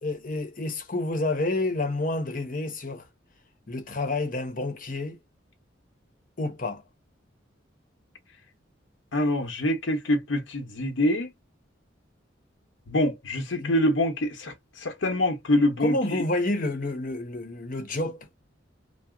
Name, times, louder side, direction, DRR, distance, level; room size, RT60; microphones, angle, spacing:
voice 1, 0.0-3.0 3.7-5.2 6.4-6.8 13.5-13.8 15.8-18.4, left 2 dB, 45° left, 0.9 m, -29 dB
voice 2, 9.1-11.3 12.9-16.2, left 1 dB, 90° left, 0.9 m, -25 dB
2.9 x 2.0 x 3.7 m
head